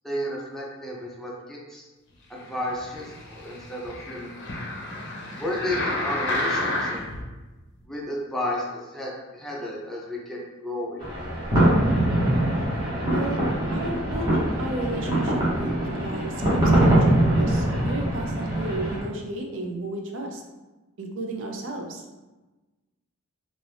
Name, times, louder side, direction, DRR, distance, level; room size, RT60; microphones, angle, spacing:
voice 1, 0.0-1.9 2.3-4.5 5.4-7.1 7.9-11.0, left 1 dB, ahead, -4 dB, 0.5 m, -32 dB
sound 1, 2.6-7.2 7.8-7.9, left 1 dB, 55° left, 0.6 m, -30 dB
sound 2, 11.0-19.0, right 1 dB, 20° right, 0.9 m, -23 dB
voice 2, 13.1-13.4 13.7-20.4 21.0-22.0, right 1 dB, 65° right, 1 dB, 0.5 m, -33 dB
2.5 x 2.4 x 3.3 m, 1.1 s
head